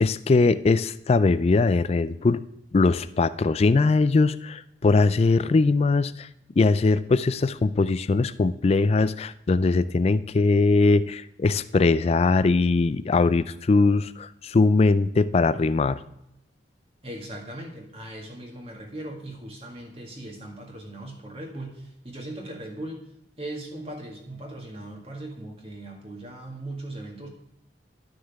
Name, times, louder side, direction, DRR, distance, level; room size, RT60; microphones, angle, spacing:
voice 1, 0.0-2.4 2.7-6.3 6.6-16.0, left 3 dB, 35° left, 15 dB, 0.3 m, -21 dB
voice 2, 17.0-23.0 23.4-27.3, right 1 dB, 35° right, 0 dB, 1.9 m, -38 dB
11.5 x 6.3 x 3.5 m, 0.84 s
head